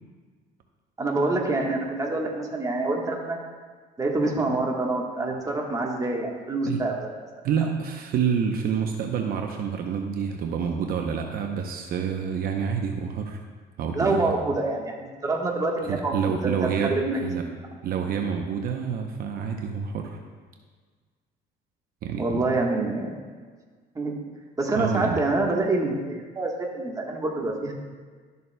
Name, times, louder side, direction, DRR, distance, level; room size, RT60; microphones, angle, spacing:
voice 1, 1.0-3.4 4.0-7.1 13.9-17.5 22.2-23.2 23.9-24.2 24.6-27.7, right 2 dB, 20° right, 0 dB, 1.3 m, -26 dB
voice 2, 7.4-13.4 13.8-14.4 15.9-16.9 17.2-17.4 17.8-20.2 22.0-22.4 24.7-25.2, right 7 dB, 60° right, 3 dB, 0.7 m, -28 dB
12.0 x 6.8 x 2.2 m, 1.5 s
cardioid pair, 110°, 17 cm